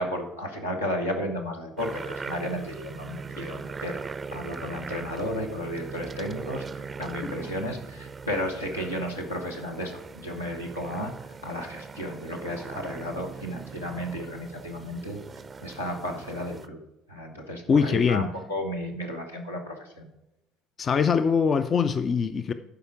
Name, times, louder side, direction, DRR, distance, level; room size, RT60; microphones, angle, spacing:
voice 1, 0.0-4.0 4.3-11.1 11.4-15.2 15.6-16.8 17.1-20.1, equal, 85° left, 0 dB, 1.2 m, -33 dB
sound 1, 1.8-16.7, right 5 dB, 25° right, 0.5 m, -40 dB
voice 2, 17.7-18.3 20.8-22.5, left 6 dB, 35° left, 11 dB, 0.4 m, -23 dB
11.5 x 4.9 x 4.7 m, 0.91 s
figure-of-eight pair, 55°, 0 cm